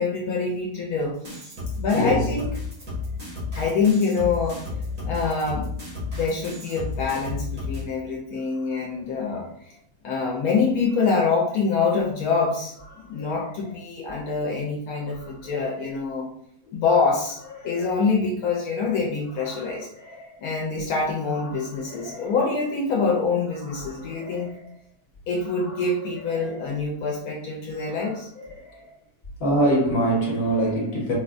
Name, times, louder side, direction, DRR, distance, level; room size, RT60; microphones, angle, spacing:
voice 1, 0.0-1.5 1.8-2.5 3.6-4.6 5.0-5.7 6.1-9.7 10.0-12.7 13.0-16.3 16.7-17.4 17.6-19.9 20.4-24.5 25.3-28.3, left 4 dB, 80° left, -2 dB, 1.1 m, -25 dB
sound 1, 1.2-7.8, left 3 dB, 85° right, 1.8 m, -32 dB
voice 2, 1.9-2.3 13.2-13.3 15.2-15.5 17.6-18.0 19.4-20.3 21.5-22.3 23.7-24.6 25.6-25.8 26.3-26.5 28.4-28.8 29.4-31.1, right 1 dB, 45° left, -3 dB, 1.3 m, -27 dB
4.5 x 2.1 x 2.5 m, 0.71 s
omnidirectional pair, 1.5 m